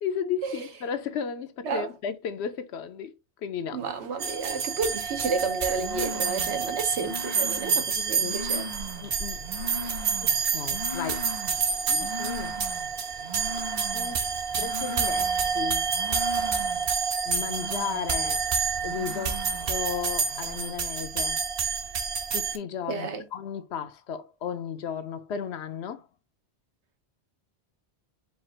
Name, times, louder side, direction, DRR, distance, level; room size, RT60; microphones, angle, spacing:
voice 1, 0.0-3.1 3.4-3.8 8.0-8.4 9.0-9.4 9.8-11.2 11.9-12.6 13.1-13.3 13.9-14.2 14.6-15.9 17.3-18.4 18.8-19.4 19.7-21.4 22.3-26.1, left 7 dB, 75° left, 0.9 m, -34 dB
voice 2, 3.7-8.7 22.9-23.2, right 4 dB, 85° right, 1.2 m, -31 dB
sound 1, 3.8-20.7, right 1 dB, 40° right, 0.8 m, -41 dB
sound 2, 4.2-22.6, right 5 dB, 60° right, 0.9 m, -28 dB
4.6 x 2.4 x 4.3 m
omnidirectional pair, 1.1 m